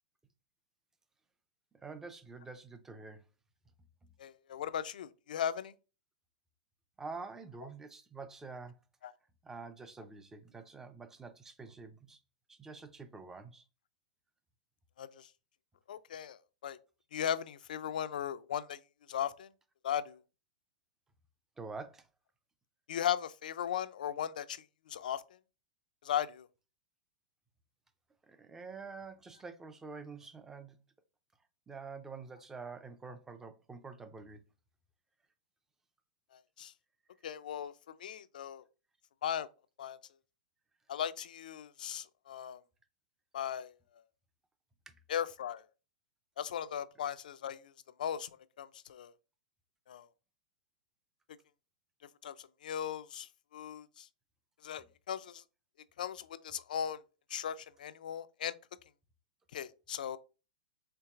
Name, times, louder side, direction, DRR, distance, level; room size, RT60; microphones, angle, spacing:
voice 1, 1.8-3.2 7.0-8.8 9.4-12.2 12.5-13.7 21.6-22.1 28.3-30.8 31.7-34.4 44.9-45.0, right 4 dB, 10° right, 0.4 m, -47 dB
voice 2, 4.2-5.7 9.0-9.1 15.0-15.3 15.9-16.8 17.1-18.8 19.1-19.5 19.8-20.2 22.9-25.2 26.0-26.5 36.6-36.7 37.2-37.7 38.0-38.6 39.2-39.5 39.8-40.0 40.9-42.6 43.3-43.7 45.1-45.6 46.4-47.7 48.0-48.3 48.6-49.1 49.9-50.1 52.2-54.1 54.6-55.4 56.0-57.0 57.3-58.5 59.5-60.2, left 9 dB, 80° left, 0.4 m, -37 dB
4.5 x 3.1 x 2.4 m
hypercardioid pair, 145°, 4 cm